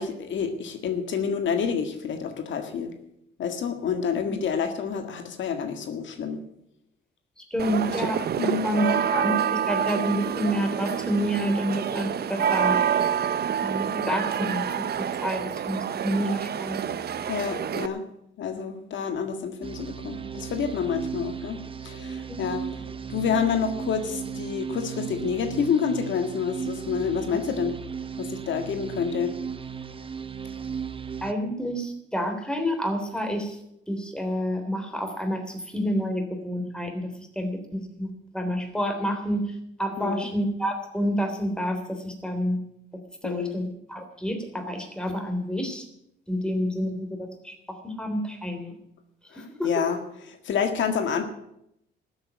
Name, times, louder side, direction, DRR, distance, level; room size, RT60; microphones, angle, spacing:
voice 1, 0.0-2.9 3.4-6.4 8.0-8.1 8.4-9.0 17.3-18.0 18.4-22.8 23.1-27.7 28.2-29.3 40.0-40.3 43.2-43.5 49.3-50.0 50.3-51.2, left 6 dB, 70° left, 7 dB, 1.8 m, -28 dB
voice 2, 7.4-12.8 13.6-14.6 14.9-17.0 22.3-22.4 31.2-33.6 33.9-39.4 39.8-42.6 43.2-45.8 46.3-48.7 49.4-49.7, equal, 5° left, 5 dB, 3.4 m, -29 dB
sound 1, 7.6-17.9, right 8 dB, 55° right, 0.9 m, -27 dB
sound 2, 19.6-31.3, right 7 dB, 25° right, 1.1 m, -35 dB
13.0 x 8.1 x 9.5 m, 0.78 s
cardioid pair, 90°, 20 cm